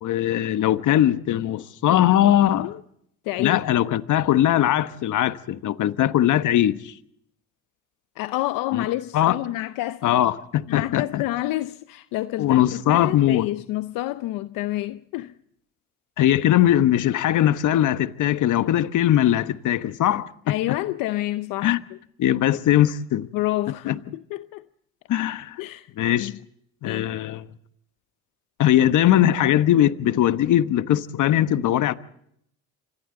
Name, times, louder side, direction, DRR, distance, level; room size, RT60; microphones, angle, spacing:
voice 1, 0.0-2.7 3.4-6.9 8.7-8.8 9.1-9.3 10.0-11.2 12.4-13.5 16.2-20.3 21.6-21.8 22.2-23.3 23.9-24.0 25.1-25.6 26.0-26.3 26.8-27.4 28.6-31.9, left 12 dB, 60° left, 1.2 m, -20 dB
voice 2, 2.5-2.8 3.2-3.6 8.2-10.0 10.7-15.4 20.5-21.8 23.3-24.7 25.6-25.9 26.2-26.4 26.8-27.1, left 16 dB, 80° left, 0.8 m, -28 dB
29.0 x 25.5 x 3.9 m
supercardioid pair, 85°, 34 cm